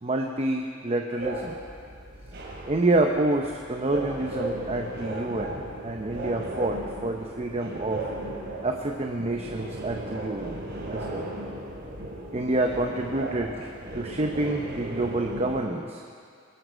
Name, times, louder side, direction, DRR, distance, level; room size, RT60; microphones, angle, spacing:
voice 1, 0.0-1.6 2.7-5.6 5.8-8.0 8.6-10.6 10.9-11.3 12.3-16.0, right 2 dB, 30° right, 2 dB, 0.8 m, -28 dB
sound 1, 1.2-15.6, right 1 dB, 60° right, 2.9 m, -36 dB
20.5 x 13.0 x 5.0 m, 2.2 s
head